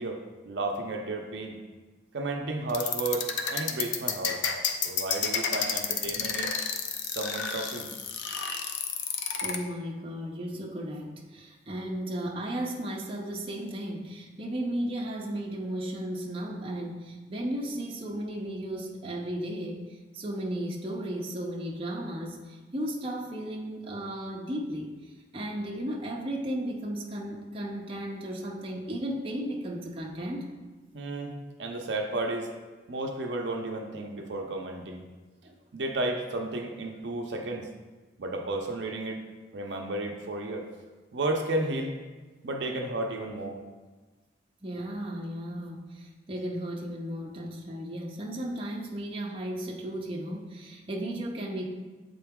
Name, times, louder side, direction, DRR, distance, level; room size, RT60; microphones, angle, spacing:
voice 1, 0.0-1.6 2.1-4.4 4.8-6.5 7.0-7.9 30.9-31.3 31.6-32.5 32.9-35.1 35.7-37.7 38.2-39.2 39.5-40.7 41.1-41.9 42.4-43.6, right 2 dB, 65° right, 2 dB, 0.6 m, -32 dB
sound 1, 2.7-9.6, left 6 dB, 75° left, 0.5 m, -30 dB
voice 2, 9.4-24.9 25.3-30.5 35.4-35.5 44.6-51.7, right 1 dB, 30° right, -2 dB, 0.7 m, -35 dB
7.7 x 3.8 x 3.6 m, 1.3 s
head